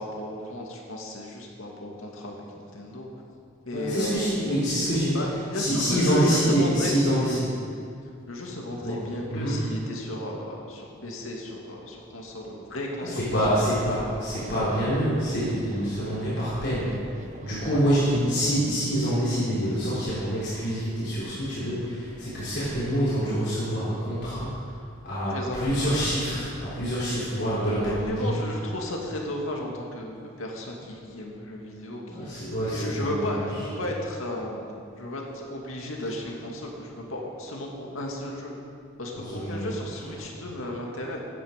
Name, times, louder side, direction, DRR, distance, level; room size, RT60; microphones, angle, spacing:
voice 1, 0.0-3.1 3.7-4.2 5.1-6.9 8.3-13.2 17.7-17.9 25.3-26.4 27.8-32.3 32.6-34.6 34.9-38.5 39.0-41.2, left 1 dB, 85° left, 0 dB, 2.3 m, -34 dB
voice 2, 3.7-5.2 5.5-7.6 8.8-9.0 9.3-9.6 13.0-24.7 25.0-28.4 32.1-33.7 39.1-39.8, equal, 55° left, -11 dB, 4.0 m, -26 dB
sound 1, 14.3-18.7, right 2 dB, 35° right, 0.8 m, -43 dB
15.5 x 10.0 x 5.2 m, 2.4 s
head